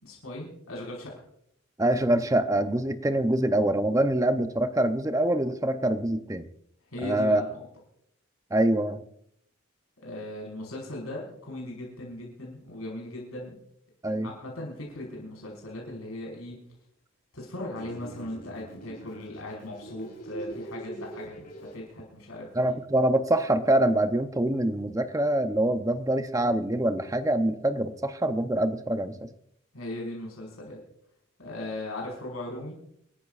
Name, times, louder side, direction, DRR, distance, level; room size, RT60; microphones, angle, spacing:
voice 1, 0.0-1.1 6.9-7.6 10.0-13.5 14.2-16.6 17.3-22.8 29.7-30.8 31.4-32.8, left 1 dB, 80° left, -2 dB, 5.2 m, -38 dB
voice 2, 1.8-6.5 7.0-7.4 8.5-9.0 14.0-14.3 22.6-29.3, right 1 dB, 15° right, 9 dB, 0.6 m, -25 dB
sound 1, 17.7-21.7, right 2 dB, 45° left, 5.1 m, -42 dB
28.0 x 12.0 x 2.5 m, 0.72 s
head